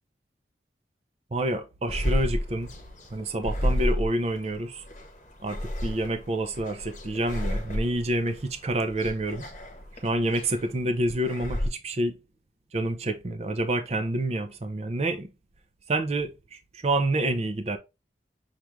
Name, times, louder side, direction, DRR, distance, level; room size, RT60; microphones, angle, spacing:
voice 1, 1.3-2.7 3.1-4.8 5.4-9.4 10.0-12.1 12.7-15.3 15.9-16.3 16.8-17.8, right 1 dB, 35° right, 0.5 m, -28 dB
sound 1, 1.9-11.7, equal, 40° left, 1.0 m, -31 dB
5.7 x 2.4 x 3.2 m
head